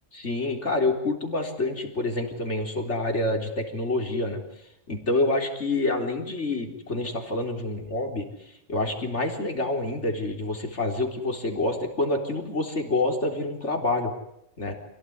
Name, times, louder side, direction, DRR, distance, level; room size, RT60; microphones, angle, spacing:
voice 1, 0.2-4.4 4.9-14.1 14.6-14.7, left 2 dB, 65° left, 3 dB, 4.3 m, -27 dB
27.5 x 17.5 x 9.6 m, 0.80 s
omnidirectional pair, 1.3 m